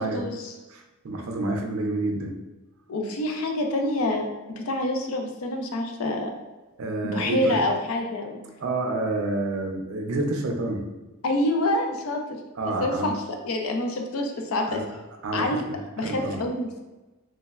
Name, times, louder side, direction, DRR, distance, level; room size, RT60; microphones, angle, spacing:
voice 1, 0.0-0.5 2.9-6.3 7.0-8.4 11.2-12.4 12.8-15.0 15.3-15.6 16.0-16.8, left 1 dB, 70° left, 3 dB, 0.4 m, -27 dB
voice 2, 0.7-2.3 6.8-7.6 8.6-10.8 12.6-13.1 14.7-14.9 15.2-16.4, right 2 dB, 65° right, 3 dB, 0.4 m, -29 dB
3.2 x 2.1 x 2.3 m, 1.1 s
head